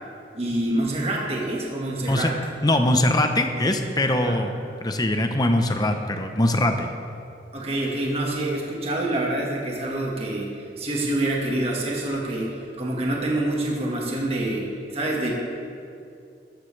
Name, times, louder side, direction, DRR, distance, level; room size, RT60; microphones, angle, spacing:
voice 1, 0.3-2.3 4.2-4.4 7.5-15.3, right 1 dB, 35° right, -2 dB, 1.8 m, -26 dB
voice 2, 2.6-4.5 4.8-6.9, left 1 dB, 20° left, 5 dB, 0.9 m, -22 dB
13.5 x 13.0 x 3.4 m, 2.5 s
head